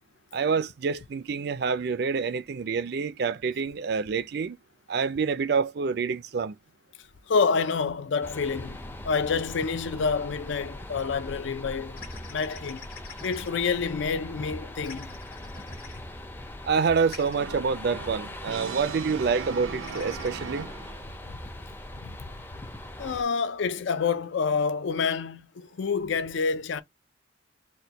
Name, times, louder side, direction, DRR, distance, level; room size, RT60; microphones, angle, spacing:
voice 1, 0.3-4.6 4.9-6.6 16.6-20.7, right 5 dB, 50° right, 0.4 m, -27 dB
voice 2, 7.3-8.8 9.0-12.0 12.3-12.9 13.2-15.1 22.0-22.2 23.0-26.8, left 5 dB, 65° left, 0.4 m, -28 dB
sound 1, 8.2-23.2, left 1 dB, 10° left, 0.4 m, -41 dB
sound 2, 11.0-11.1 12.0-13.5 14.8-16.0 17.1-17.4 19.8-20.3, left 5 dB, 45° left, 1.5 m, -46 dB
Brass instrument, 17.4-21.2, right 5 dB, 90° right, 0.7 m, -39 dB
4.3 x 2.2 x 3.9 m
head